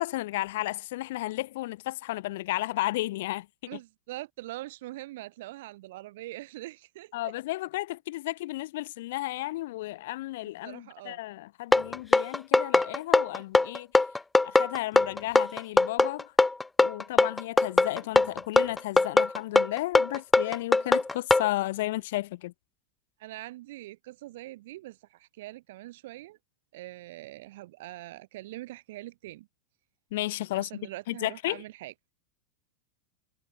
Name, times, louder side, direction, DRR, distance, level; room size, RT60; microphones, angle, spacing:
voice 1, 0.0-3.7 7.1-13.9 14.4-16.3 16.8-22.5 30.1-31.6, left 17 dB, 60° left, 1.4 m, -33 dB
voice 2, 3.7-7.3 10.6-11.2 23.2-26.4 26.7-29.5 30.5-31.9, right 17 dB, 60° right, 3.9 m, -43 dB
sound 1, 11.7-21.5, left 3 dB, 10° left, 0.5 m, -21 dB
figure-of-eight pair, 90°, 0 cm